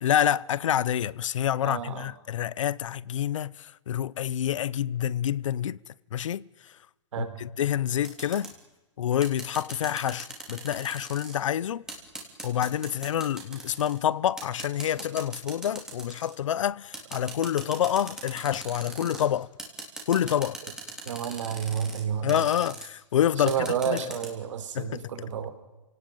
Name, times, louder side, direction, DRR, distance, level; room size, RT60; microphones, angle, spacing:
voice 1, 0.0-5.8 6.1-6.7 7.2-8.5 9.0-11.8 12.4-19.5 20.1-20.6 22.2-23.6 23.9-24.0 24.7-25.0, left 10 dB, 85° left, 0.8 m, -27 dB
voice 2, 1.6-2.1 7.1-7.4 21.0-22.4 23.4-25.5, right 8 dB, 75° right, 4.7 m, -30 dB
sound 1, 8.0-8.5 9.2-11.4 11.9-14.0 14.4-16.4 16.9-19.2 19.6-22.0 22.3-22.8 23.5-24.3, right 2 dB, 5° right, 3.5 m, -40 dB
29.0 x 18.0 x 9.4 m
hypercardioid pair, 170°, 16 cm